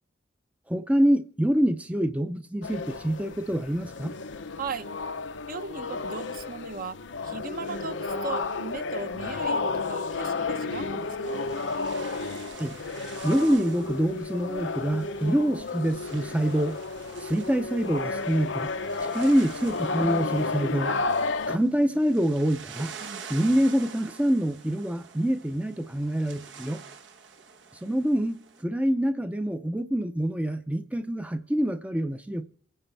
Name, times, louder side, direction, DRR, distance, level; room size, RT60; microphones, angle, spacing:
voice 1, 0.7-4.2 12.6-12.8 13.2-16.8 17.2-18.7 19.0-21.0 21.5-22.9 23.3-26.8 27.8-28.4 28.6-32.4, equal, 5° right, 0.5 m, -26 dB
sound 1, 2.6-21.6, left 3 dB, 85° left, 0.7 m, -32 dB
voice 2, 4.6-4.9 5.5-11.4 23.0-23.2, right 4 dB, 50° right, 0.7 m, -37 dB
sound 2, 11.0-28.6, right 6 dB, 85° right, 1.1 m, -47 dB
28.5 x 10.0 x 3.4 m
head